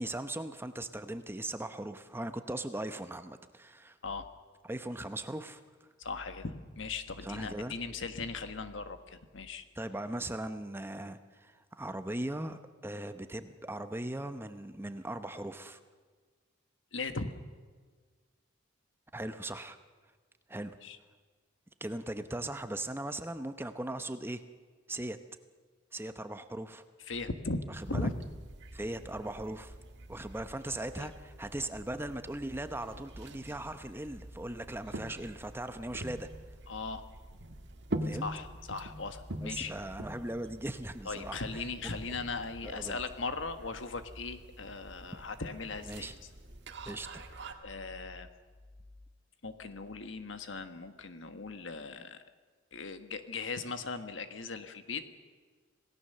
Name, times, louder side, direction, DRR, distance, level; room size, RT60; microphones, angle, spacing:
voice 1, 0.0-4.0 4.6-5.6 7.2-7.7 9.8-15.8 19.1-19.8 20.5-20.8 21.8-24.4 24.9-25.2 25.9-26.8 27.7-28.1 28.7-29.8 30.1-36.3 38.0-38.3 39.4-41.7 42.6-43.0 45.9-46.1 46.9-47.6, right 1 dB, 10° right, 9 dB, 0.8 m, -39 dB
voice 2, 6.0-9.6 16.9-17.3 20.8-21.0 27.1-28.1 30.9-31.1 36.7-37.0 38.2-39.7 41.0-46.1 47.6-48.3 49.4-52.2 52.7-55.0, left 3 dB, 70° left, 9 dB, 1.5 m, -38 dB
sound 1, 27.8-47.5, right 1 dB, 60° right, 1.9 m, -45 dB
26.5 x 17.5 x 6.8 m, 1.5 s
head